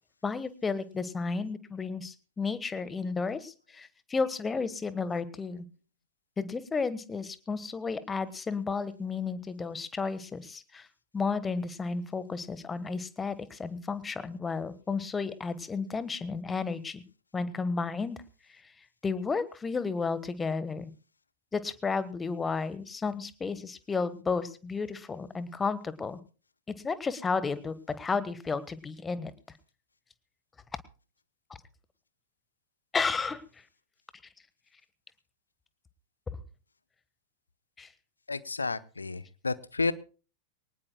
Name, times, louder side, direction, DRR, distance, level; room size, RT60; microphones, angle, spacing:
voice 1, 0.2-5.6 6.4-10.9 11.1-17.0 17.3-18.2 18.5-18.7 19.0-20.9 21.5-26.2 26.8-29.3 32.9-33.4 37.8-37.9, left 4 dB, 15° left, 15 dB, 1.4 m, -32 dB
voice 2, 38.3-39.9, left 3 dB, 80° left, 16 dB, 0.9 m, -31 dB
23.5 x 19.0 x 2.2 m, 0.35 s
figure-of-eight pair, 90°, 0 cm